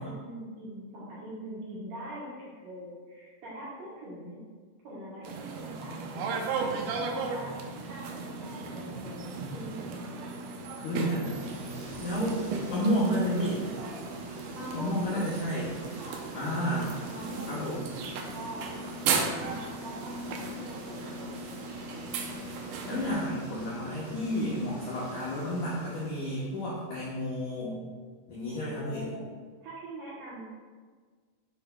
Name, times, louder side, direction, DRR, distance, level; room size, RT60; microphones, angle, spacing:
voice 1, 0.0-4.4 4.8-6.5 6.9-7.5 7.8-10.1 14.5-15.2 16.0-16.5 17.0-18.7 19.2-21.3 28.5-29.2 29.6-30.4, right 1 dB, 70° right, -7 dB, 2.2 m, -43 dB
sound 1, 5.2-23.1, right 4 dB, 90° right, 2.1 m, -36 dB
voice 2, 10.8-13.7 14.7-15.9 16.4-17.0 17.5-17.8 22.8-27.8 28.3-29.1, equal, 85° left, -7 dB, 1.8 m, -31 dB
sound 2, 11.2-26.8, right 1 dB, 50° right, 1.8 m, -46 dB
8.9 x 5.6 x 2.2 m, 1.5 s
omnidirectional pair, 5.1 m